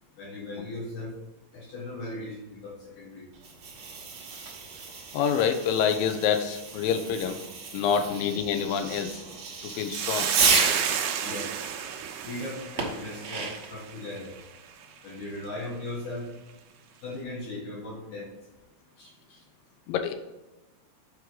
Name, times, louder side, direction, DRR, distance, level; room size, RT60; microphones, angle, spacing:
voice 1, 0.2-1.1 1.5-3.3 11.2-11.5 12.2-14.3 15.0-16.3 17.0-18.3 19.0-19.1, left 2 dB, 65° left, -2 dB, 2.7 m, -37 dB
Fireworks, 3.3-11.0 12.8-13.8, right 5 dB, 70° right, 1.1 m, -32 dB
voice 2, 5.1-7.4 7.7-9.2 9.6-10.3 19.9-20.1, left 7 dB, 85° left, 7 dB, 2.5 m, -27 dB
Hiss, 9.9-14.4, right 8 dB, 85° right, 1.5 m, -32 dB
7.6 x 4.8 x 3.8 m, 1.1 s
omnidirectional pair, 4.0 m